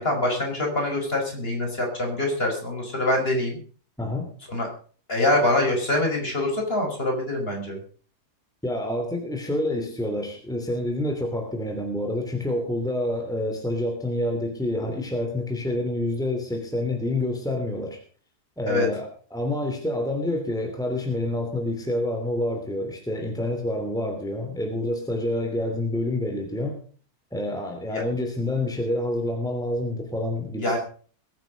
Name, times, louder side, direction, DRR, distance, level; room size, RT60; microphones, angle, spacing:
voice 1, 0.0-3.6 4.5-4.7 5.1-7.8 18.7-18.9 27.9-28.0 30.6-30.8, left 1 dB, 35° left, 1 dB, 5.7 m, -24 dB
voice 2, 4.0-4.3 8.6-18.0 18.6-26.8 27.3-30.8, left 1 dB, ahead, 3 dB, 2.9 m, -28 dB
21.5 x 9.4 x 5.2 m, 0.42 s
omnidirectional pair, 1.7 m